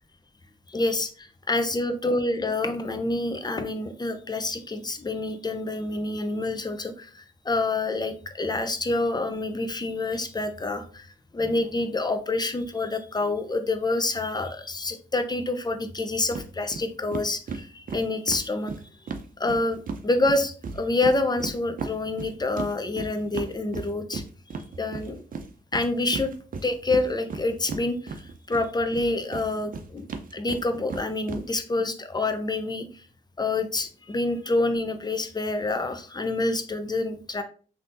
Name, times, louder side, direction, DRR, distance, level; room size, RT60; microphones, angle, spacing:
voice 1, 0.7-1.1 1.5-11.1 11.3-18.7 19.4-24.2 24.8-25.2 25.7-26.3 26.6-30.0 30.3-32.8 33.4-37.4, left 2 dB, 20° left, 8 dB, 0.6 m, -27 dB
sound 1, 16.3-16.5 16.7-16.8 17.1-20.0 20.3-28.6 28.9-31.4, right 4 dB, 50° right, 0.6 m, -35 dB
3.4 x 2.8 x 2.6 m, 0.39 s
supercardioid pair, 45°, 18 cm